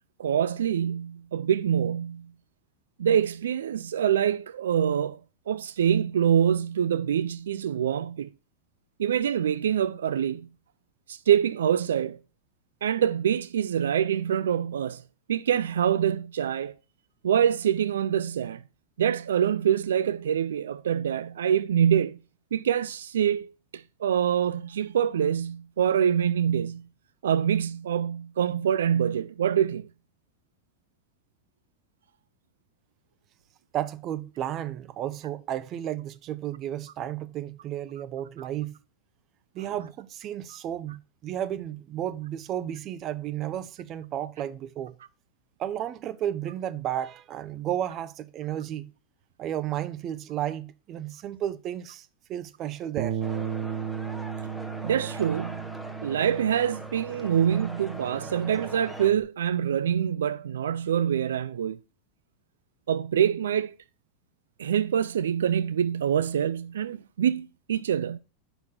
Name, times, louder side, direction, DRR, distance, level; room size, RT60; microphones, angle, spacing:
voice 1, 0.2-2.2 3.0-5.2 5.5-8.3 9.0-10.5 11.1-12.2 12.8-15.0 15.3-16.7 17.2-18.6 19.0-22.2 22.5-26.8 27.2-29.9 38.4-38.5 39.6-39.7 54.8-55.7 56.0-61.8 62.9-63.7 64.6-68.2, right 9 dB, 90° right, 0.3 m, -25 dB
voice 2, 33.7-38.8 39.5-44.9 45.6-48.9 49.4-53.2, right 11 dB, 40° right, 0.7 m, -33 dB
Bass guitar, 53.0-59.2, right 8 dB, 70° right, 0.9 m, -36 dB
sound 1, 53.2-59.1, equal, 5° right, 1.3 m, -42 dB
8.0 x 6.0 x 3.7 m
hypercardioid pair, 115°, 0 cm